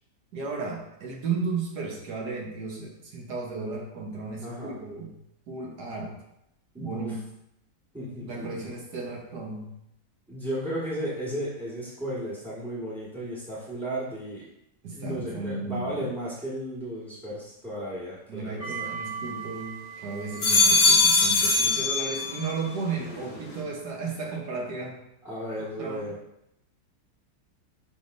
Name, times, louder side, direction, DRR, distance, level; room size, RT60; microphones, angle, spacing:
voice 1, 0.3-5.1 5.5-6.2 6.8-7.2 8.3-9.7 14.8-16.1 18.3-25.0 25.6-26.1, right 4 dB, 70° right, -1 dB, 1.7 m, -34 dB
voice 2, 4.4-4.8 6.7-7.1 7.9-8.6 10.3-14.4 14.9-18.9 25.2-26.2, right 1 dB, 5° right, -8 dB, 1.5 m, -34 dB
sound 1, 18.6-19.7 20.2-22.6 23.0-23.6, left 3 dB, 75° left, 1.9 m, -23 dB
10.5 x 3.5 x 2.7 m, 0.80 s
omnidirectional pair, 1.9 m